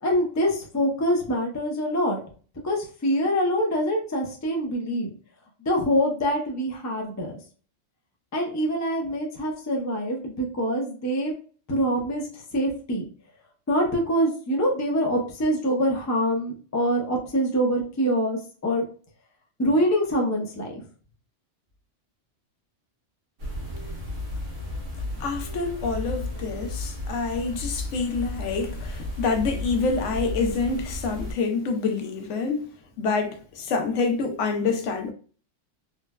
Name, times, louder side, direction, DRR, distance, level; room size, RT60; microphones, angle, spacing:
voice 1, 0.0-2.2 2.6-5.1 5.6-7.3 8.3-11.3 11.7-13.1 13.7-18.8 19.6-20.8, equal, 25° left, 0.4 m, -25 dB
sound 1, 23.4-31.3, left 2 dB, 75° right, 1.3 m, -33 dB
voice 2, 25.1-32.7 33.0-35.1, left 4 dB, 75° left, 0.9 m, -27 dB
3.8 x 2.1 x 2.2 m
omnidirectional pair, 1.3 m